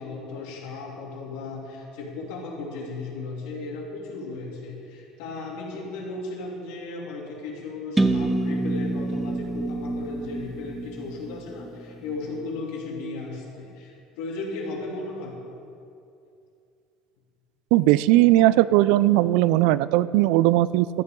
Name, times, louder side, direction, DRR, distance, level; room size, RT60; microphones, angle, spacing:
voice 1, 0.0-15.3, left 3 dB, 75° left, -2 dB, 3.2 m, -35 dB
sound 1, 8.0-11.8, right 2 dB, 5° right, 0.5 m, -27 dB
voice 2, 17.7-20.9, right 16 dB, 75° right, 17 dB, 0.3 m, -18 dB
13.0 x 10.5 x 5.3 m, 2.6 s
cardioid pair, 150°, 0 cm